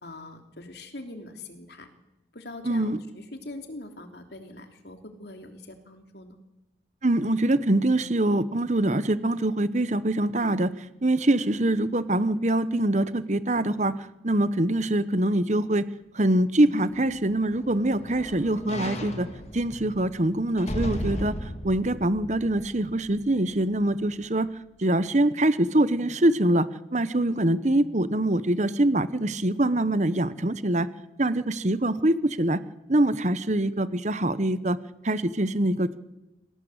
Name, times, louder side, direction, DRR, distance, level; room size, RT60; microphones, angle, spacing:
voice 1, 0.0-1.9 2.3-6.4, left 2 dB, 60° left, 6 dB, 3.2 m, -42 dB
voice 2, 2.6-3.0 7.0-15.9 16.1-19.3 19.5-24.5 24.8-30.9 31.2-32.6 32.9-34.8 35.0-36.0, right 1 dB, 40° right, 15 dB, 1.0 m, -24 dB
sound 1, 16.9-23.3 23.7-23.8, equal, 35° left, 2.5 m, -36 dB
27.0 x 17.5 x 8.0 m, 0.96 s
head